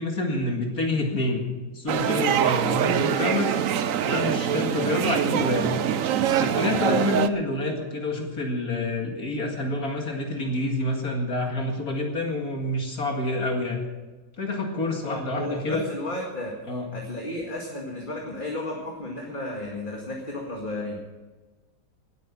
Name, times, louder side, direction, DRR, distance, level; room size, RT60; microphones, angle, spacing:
voice 1, 0.0-1.4 1.7-3.5 4.0-5.7 6.4-13.9 14.4-15.8 16.7-16.9, left 2 dB, 60° left, 1 dB, 2.5 m, -27 dB
sound 1, 1.9-7.3, right 9 dB, 60° right, 1.0 m, -24 dB
voice 2, 15.0-16.6 16.9-21.0, left 2 dB, 30° left, -1 dB, 2.2 m, -33 dB
19.0 x 9.2 x 6.0 m, 1.2 s
omnidirectional pair, 1.8 m